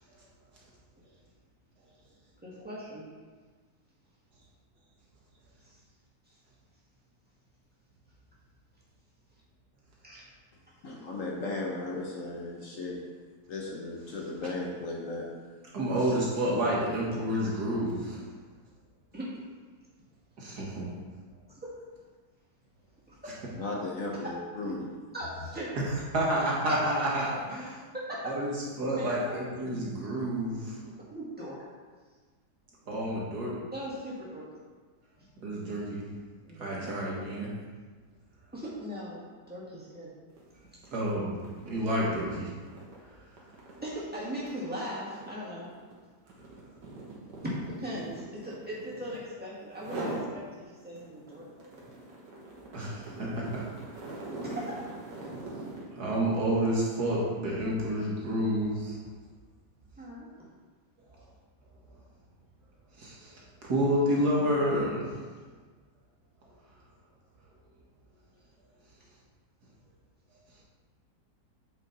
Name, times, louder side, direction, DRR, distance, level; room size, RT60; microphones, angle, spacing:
voice 1, 2.4-3.0 5.6-5.8 10.0-10.3 19.1-19.4 20.6-20.7 21.5-21.7 23.1-23.4 25.1-25.9 26.7-26.8 27.2-27.3 27.6-28.4 28.9-29.5 30.8-31.6 33.7-34.5 35.2-35.3 36.5-37.1 38.5-40.1 40.5-40.6 43.8-45.7 47.7-51.7 54.0-54.1 54.4-54.8 55.3-55.4 60.0-60.3, equal, 5° right, -7 dB, 1.7 m, -39 dB
voice 2, 10.5-13.1 13.5-15.3 23.5-25.1, left 2 dB, 55° left, -1 dB, 1.2 m, -36 dB
voice 3, 15.7-18.2 20.4-20.9 26.1-27.7 28.2-30.7 32.9-33.5 35.4-36.1 36.6-37.5 40.9-41.3 41.7-42.5 52.7-53.6 56.0-59.0 63.0-63.3 63.6-65.1, equal, 70° right, -5 dB, 2.0 m, -29 dB
sound 1, 40.3-40.5 40.8-49.3 49.7-50.3 50.8-55.9, right 2 dB, 85° right, 2.0 m, -42 dB
7.8 x 5.0 x 4.0 m, 1.5 s
omnidirectional pair, 1.8 m